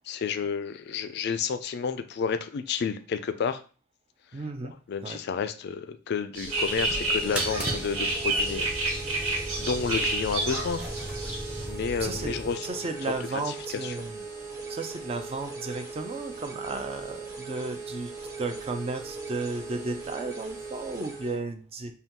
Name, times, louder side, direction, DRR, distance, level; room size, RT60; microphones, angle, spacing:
voice 1, 0.1-3.6 4.9-9.0 9.6-10.8 11.7-12.9 13.5-13.6 13.8-13.9, left 6 dB, 50° left, 10 dB, 0.3 m, -31 dB
voice 2, 4.3-4.8 5.0-5.2 12.0-14.3 14.7-18.1 18.4-21.9, right 3 dB, 30° right, 7 dB, 0.4 m, -34 dB
sound 1, 6.3-11.6, right 2 dB, 80° right, 1.3 m, -30 dB
sound 2, 6.4-21.4, right 4 dB, 50° right, 1.6 m, -39 dB
sound 3, 6.7-12.6, equal, 5° right, 0.8 m, -37 dB
5.4 x 2.2 x 2.9 m, 0.37 s
head